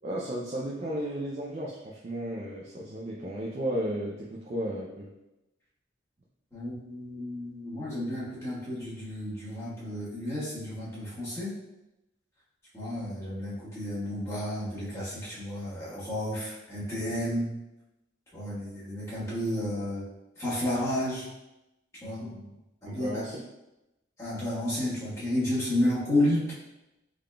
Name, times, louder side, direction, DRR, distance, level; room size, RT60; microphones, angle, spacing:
voice 1, 0.0-5.1 22.9-23.4, right 1 dB, 35° right, -3 dB, 0.4 m, -34 dB
voice 2, 6.5-11.6 12.7-17.5 18.3-20.1 20.4-21.3 22.0-22.4 22.8-23.2 24.2-26.5, left 1 dB, 15° left, -9 dB, 1.3 m, -31 dB
3.7 x 3.6 x 2.2 m, 0.93 s
head